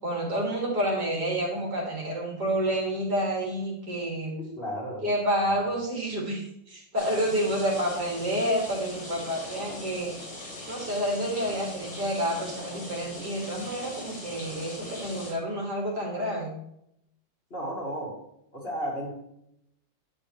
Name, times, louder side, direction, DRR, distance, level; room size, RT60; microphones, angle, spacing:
voice 1, 0.0-4.4 5.0-10.1 10.7-16.5, right 1 dB, 60° right, -3 dB, 3.1 m, -29 dB
voice 2, 4.4-5.1 5.5-5.6 17.5-18.1 18.5-19.1, equal, 30° left, -4 dB, 2.5 m, -34 dB
sound 1, 7.0-15.3, left 1 dB, 85° left, 4.1 m, -40 dB
9.4 x 8.2 x 3.3 m, 0.76 s
omnidirectional pair, 2.0 m